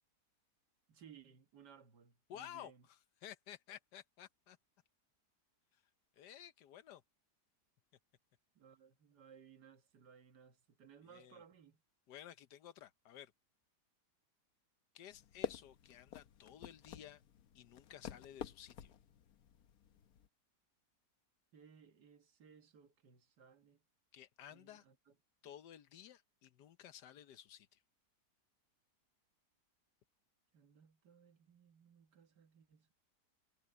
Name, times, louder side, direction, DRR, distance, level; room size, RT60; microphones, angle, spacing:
voice 1, 0.9-2.9 8.6-11.8 21.5-23.8 24.5-25.2 30.5-32.9, right 7 dB, 85° right, 2.1 m, -62 dB
voice 2, 2.3-4.6 6.2-7.0 11.0-11.4 12.1-13.3 14.9-17.2 17.5-18.9 24.1-24.9 25.4-27.8, left 10 dB, 90° left, 1.5 m, -54 dB
sound 1, 15.1-20.3, left 9 dB, 70° left, 1.3 m, -49 dB
omnidirectional pair, 1.7 m